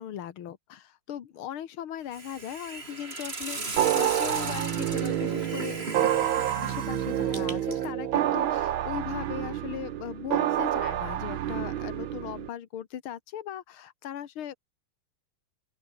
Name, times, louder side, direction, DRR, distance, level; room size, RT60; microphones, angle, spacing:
voice 1, 0.0-5.8 6.6-14.5, left 10 dB, 75° left, 2.3 m, -38 dB
Hiss, 2.1-7.9, right 3 dB, 25° right, 3.5 m, -37 dB
sound 1, 3.8-12.5, right 11 dB, 70° right, 1.7 m, -28 dB
open air
omnidirectional pair, 2.4 m